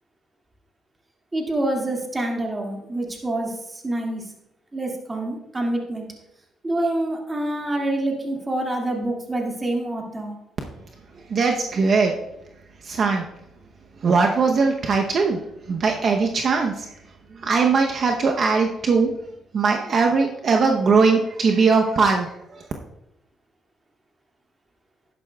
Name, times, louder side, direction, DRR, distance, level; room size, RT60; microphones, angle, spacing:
voice 1, 1.3-3.5 3.8-4.2 4.7-6.0 6.6-10.3, right 1 dB, 20° right, 0 dB, 2.1 m, -26 dB
voice 2, 11.1-12.1 12.8-13.2 14.0-15.4 15.7-17.0 17.3-19.3 19.5-22.6, right 4 dB, 55° right, 3 dB, 0.8 m, -20 dB
11.0 x 10.5 x 2.3 m, 0.84 s
cardioid pair, 90°, 0 cm